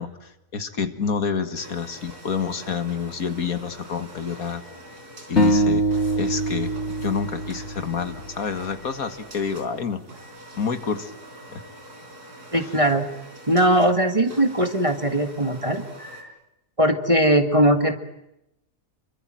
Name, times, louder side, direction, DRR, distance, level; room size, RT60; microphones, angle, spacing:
voice 1, 0.0-4.6 5.3-5.8 6.2-6.7 7.0-10.0 10.6-11.1 11.5-11.6 12.5-12.7, left 6 dB, 65° left, 9 dB, 2.1 m, -28 dB
sound 1, 1.5-16.2, right 1 dB, 90° right, 5.0 m, -44 dB
sound 2, 5.4-8.6, right 1 dB, 45° left, 4.0 m, -23 dB
voice 2, 12.5-13.1 13.5-16.3 16.8-17.9, right 1 dB, 20° right, 7 dB, 1.7 m, -20 dB
28.0 x 24.0 x 7.7 m, 0.87 s
omnidirectional pair, 1.6 m